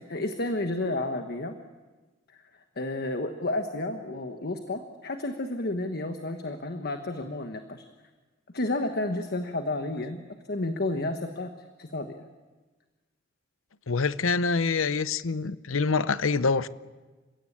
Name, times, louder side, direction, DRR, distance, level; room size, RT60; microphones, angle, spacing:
voice 1, 0.0-1.6 2.8-7.8 8.5-10.2 10.5-11.5 11.8-12.2, left 2 dB, 55° left, 1.3 m, -31 dB
voice 2, 13.9-16.7, left 4 dB, 85° left, 0.7 m, -25 dB
29.5 x 16.5 x 8.7 m
head